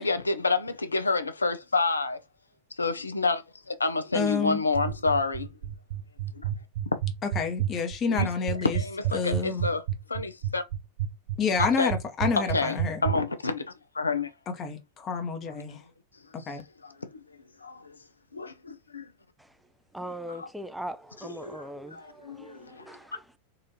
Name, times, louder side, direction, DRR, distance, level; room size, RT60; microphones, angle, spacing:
voice 1, 0.0-2.2 2.8-3.4 3.7-5.5 6.3-6.4 8.1-8.3 8.7-9.8 10.1-10.6 11.8-11.9 12.5-14.3 16.5-16.9 17.6-17.9 18.3-19.0 20.3-20.5 21.3-22.8, left 3 dB, 80° left, 0.5 m, -29 dB
voice 2, 4.1-4.6 7.3-8.8 9.1-9.6 11.4-13.0 14.6-15.8 16.3-16.6, left 5 dB, 30° left, 0.8 m, -29 dB
sound 1, 4.7-13.2, right 11 dB, 55° right, 0.6 m, -29 dB
voice 3, 19.9-23.2, equal, 5° right, 0.3 m, -40 dB
4.0 x 2.5 x 2.8 m
figure-of-eight pair, 90°, 0 cm